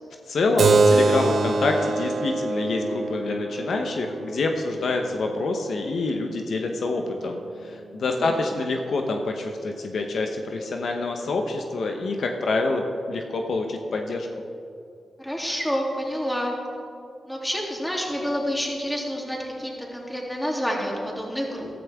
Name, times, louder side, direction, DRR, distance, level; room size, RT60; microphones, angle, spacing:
voice 1, 0.3-14.3, left 3 dB, 70° left, 3 dB, 0.9 m, -26 dB
Keyboard (musical), 0.6-5.7, right 3 dB, 70° right, 0.9 m, -24 dB
voice 2, 15.2-16.6 17.3-21.7, equal, 5° left, -2 dB, 3.0 m, -28 dB
14.0 x 13.0 x 3.6 m, 2.5 s
cardioid pair, 55°, 0 cm